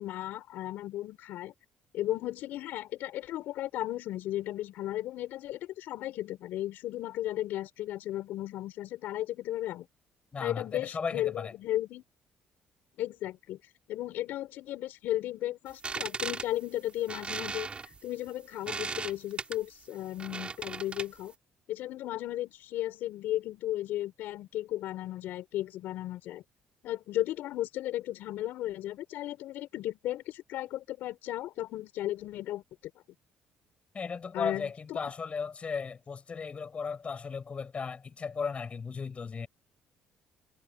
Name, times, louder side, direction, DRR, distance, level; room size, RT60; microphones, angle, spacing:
voice 1, 0.0-1.5 1.9-9.9 10.4-12.0 13.0-13.6 13.9-17.7 18.0-21.3 21.7-26.4 26.8-32.6 34.3-35.0, left 14 dB, 75° left, 5.7 m, -35 dB
voice 2, 10.3-11.5 33.9-39.5, left 5 dB, 40° left, 7.9 m, -36 dB
sound 1, 15.7-21.3, right 4 dB, 35° right, 7.4 m, -38 dB
supercardioid pair, 75°, 3 cm